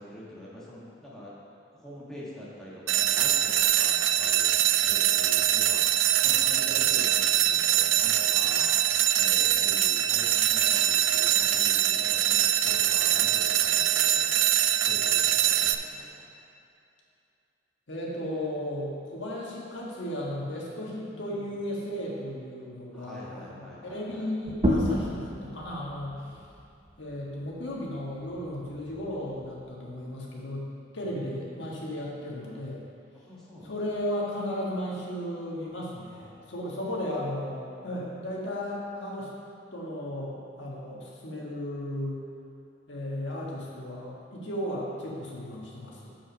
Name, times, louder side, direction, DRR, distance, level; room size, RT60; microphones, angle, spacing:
voice 1, 0.0-1.3 1.7-4.5 4.9-8.8 9.2-14.5 14.8-16.3 21.1-21.5 22.9-24.3 31.0-31.4 33.1-34.0 36.9-37.1, left 1 dB, 5° left, -8 dB, 1.8 m, -45 dB
sound 1, 2.9-15.7, right 11 dB, 80° right, 0.4 m, -23 dB
voice 2, 17.9-26.2 27.0-30.7 30.9-32.8 33.6-39.3 39.7-42.2 42.9-46.1, left 1 dB, 70° left, -4 dB, 1.6 m, -35 dB
sound 2, 24.5-29.7, equal, 25° right, 0.8 m, -32 dB
7.3 x 6.3 x 5.2 m, 2.6 s
head